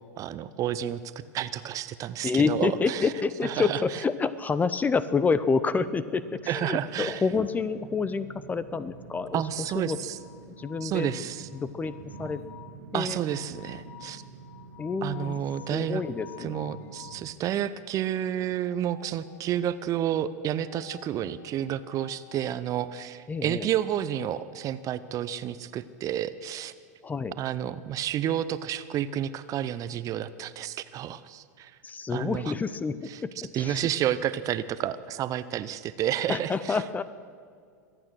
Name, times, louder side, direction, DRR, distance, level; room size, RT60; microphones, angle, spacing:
voice 1, 0.2-1.0 1.3-3.1 3.4-3.8 6.5-7.2 9.3-10.2 10.8-11.5 12.9-14.2 15.0-16.0 16.4-26.7 27.4-31.7 32.1-32.5 33.5-36.8, right 11 dB, 40° right, 15 dB, 0.7 m, -30 dB
voice 2, 2.2-10.0 10.5-11.1 11.5-11.9 12.2-12.4 12.9-13.2 14.8-15.4 15.7-16.7 23.3-23.7 27.0-27.4 31.8-33.9 36.3-37.0, left 5 dB, 20° left, 15 dB, 0.6 m, -28 dB
sound 1, 5.2-17.3, right 5 dB, 85° right, 1.9 m, -48 dB
sound 2, 9.2-17.3 18.6-19.9 20.6-22.6 23.8-25.1, left 14 dB, 55° left, 1.1 m, -51 dB
23.5 x 8.9 x 6.3 m, 2.2 s
hypercardioid pair, 95°, 9 cm